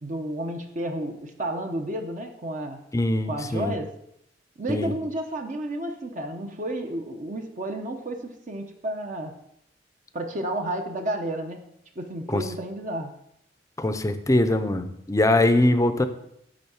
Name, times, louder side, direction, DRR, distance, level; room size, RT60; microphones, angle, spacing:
voice 1, 0.0-2.8 3.2-3.9 4.6-9.3 10.1-11.7 12.0-13.1, right 1 dB, 45° right, 4 dB, 0.8 m, -31 dB
voice 2, 2.9-3.7 4.7-4.9 12.3-12.4 13.8-16.1, left 1 dB, 20° left, 9 dB, 0.6 m, -22 dB
10.5 x 3.6 x 7.0 m, 0.77 s
head